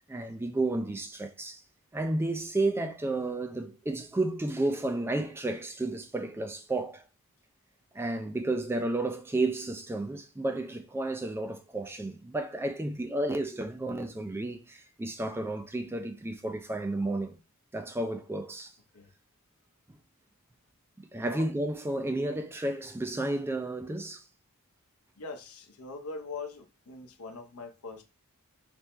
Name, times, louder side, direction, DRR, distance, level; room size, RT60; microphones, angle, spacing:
voice 1, 0.1-1.6 1.9-7.0 7.9-17.4 17.7-18.7 21.0-24.2, right 2 dB, 10° right, 0.3 m, -32 dB
voice 2, 25.2-28.0, left 4 dB, 75° left, 0.8 m, -42 dB
3.3 x 3.0 x 3.2 m
head